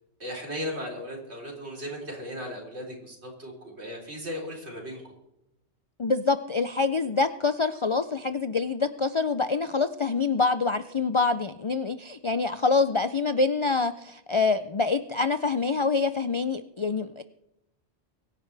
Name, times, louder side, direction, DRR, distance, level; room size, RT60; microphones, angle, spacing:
voice 1, 0.2-5.1, equal, 70° right, 0 dB, 4.0 m, -36 dB
voice 2, 6.0-17.2, left 4 dB, 45° left, 11 dB, 0.4 m, -26 dB
23.5 x 10.5 x 3.3 m, 0.86 s
omnidirectional pair, 1.2 m